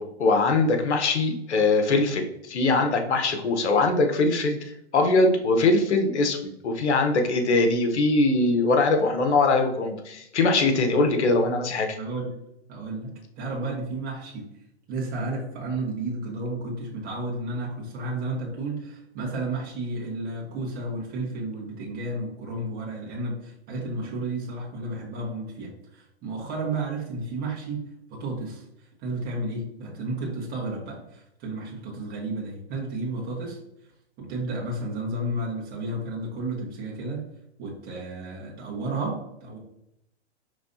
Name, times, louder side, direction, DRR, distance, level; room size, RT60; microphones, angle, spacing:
voice 1, 0.0-6.4 6.6-12.0, left 3 dB, 85° left, 5 dB, 0.9 m, -22 dB
voice 2, 12.0-12.3 12.7-14.5 14.9-28.6 29.0-33.6 34.2-37.2 37.6-39.6, right 2 dB, 25° right, -3 dB, 1.3 m, -32 dB
5.3 x 3.1 x 2.7 m, 0.79 s
hypercardioid pair, 130°, 33 cm